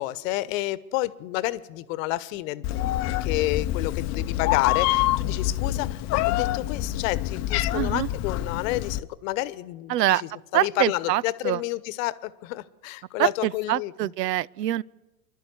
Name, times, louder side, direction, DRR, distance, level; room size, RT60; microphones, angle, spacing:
voice 1, 0.0-10.2 10.5-14.1, left 17 dB, 55° left, 1.1 m, -30 dB
Meow, 2.6-9.0, left 14 dB, 35° left, 0.7 m, -26 dB
voice 2, 7.7-8.1 9.9-10.2 10.5-11.6 13.2-14.8, right 14 dB, 80° right, 0.6 m, -25 dB
26.5 x 12.0 x 9.4 m
hypercardioid pair, 110°, 48 cm